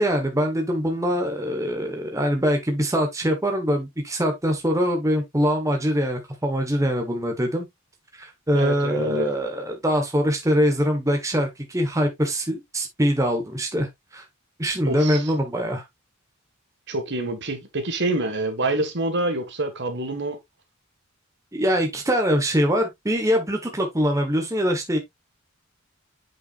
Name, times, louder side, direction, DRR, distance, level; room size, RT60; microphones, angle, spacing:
voice 1, 0.0-7.7 8.1-13.9 14.1-14.2 14.6-15.8 21.5-25.0, equal, 15° right, 1.3 m, -23 dB
voice 2, 8.5-9.3 14.9-15.3 16.9-20.4, right 2 dB, 55° right, 1.8 m, -27 dB
8.1 x 6.0 x 2.5 m
head